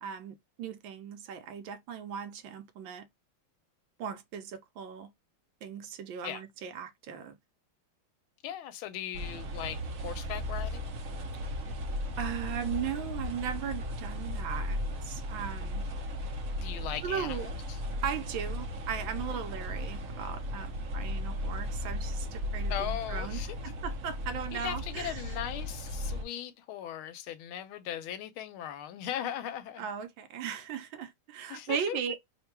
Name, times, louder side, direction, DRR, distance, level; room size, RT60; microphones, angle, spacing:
voice 1, 0.0-3.1 4.0-5.1 5.6-7.3 12.2-15.9 17.0-17.5 18.0-25.2 29.8-32.2, right 8 dB, 75° right, 1.3 m, -37 dB
voice 2, 8.4-10.8 16.6-17.8 22.7-23.6 24.5-29.9 31.5-32.0, left 11 dB, 85° left, 1.4 m, -38 dB
sound 1, 9.1-26.2, left 1 dB, 60° right, 0.9 m, -36 dB
3.5 x 2.2 x 4.3 m
omnidirectional pair, 2.3 m